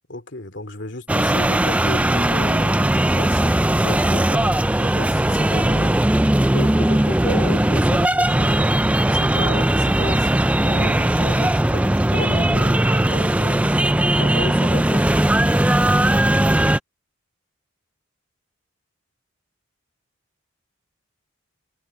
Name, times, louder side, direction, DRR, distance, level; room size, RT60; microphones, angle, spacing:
voice 1, 0.1-3.5 3.8-4.5 4.8-6.0 6.5-8.6 9.1-13.7 14.2-15.0, left 2 dB, 60° left, 2.8 m, -33 dB
sound 1, 1.1-16.8, right 1 dB, 5° right, 0.3 m, -18 dB
head